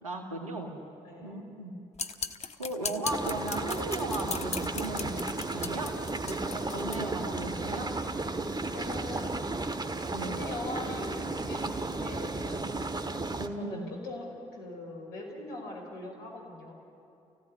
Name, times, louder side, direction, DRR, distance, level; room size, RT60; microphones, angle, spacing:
voice 1, 0.0-0.8 1.2-1.7 2.6-5.2 5.5-5.9 6.3-7.9 10.1-10.4 13.4-13.9, right 2 dB, 90° right, 3 dB, 1.9 m, -36 dB
voice 2, 1.0-1.4 6.7-6.8 8.7-9.4 10.2-12.7 13.6-16.7, left 2 dB, 70° left, 0 dB, 5.2 m, -41 dB
mixing omelette, 2.0-7.0, left 5 dB, 40° left, 1.3 m, -37 dB
sound 1, 3.0-13.5, right 2 dB, 25° right, 1.7 m, -34 dB
28.0 x 16.5 x 9.8 m, 2.7 s
hypercardioid pair, 40°, 17 cm